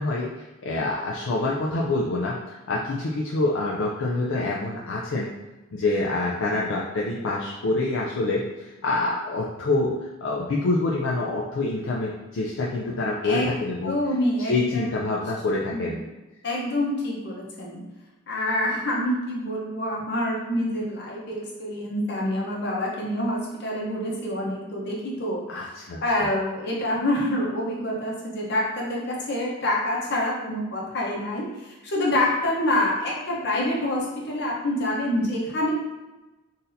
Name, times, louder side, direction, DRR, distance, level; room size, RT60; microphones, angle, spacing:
voice 1, 0.0-5.3 5.7-14.0 14.5-16.0 25.5-26.0, left 2 dB, 70° left, -3 dB, 0.4 m, -26 dB
voice 2, 13.9-14.9 15.7-15.9 16.4-17.8 18.3-25.7 26.0-35.7, left 1 dB, 55° left, -3 dB, 0.9 m, -27 dB
4.0 x 2.6 x 2.6 m, 1.1 s
head